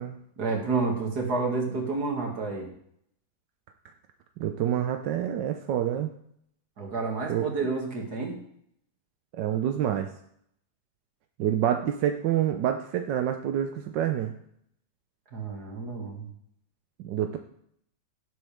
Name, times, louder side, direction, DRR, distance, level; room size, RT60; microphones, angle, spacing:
voice 1, 0.4-2.7 6.8-8.4 15.3-16.3, right 4 dB, 65° right, 1 dB, 2.7 m, -29 dB
voice 2, 4.4-6.1 7.3-7.5 9.3-10.1 11.4-14.3 17.0-17.4, right 10 dB, 90° right, 6 dB, 1.4 m, -27 dB
17.5 x 7.9 x 3.5 m, 0.70 s
omnidirectional pair, 1.9 m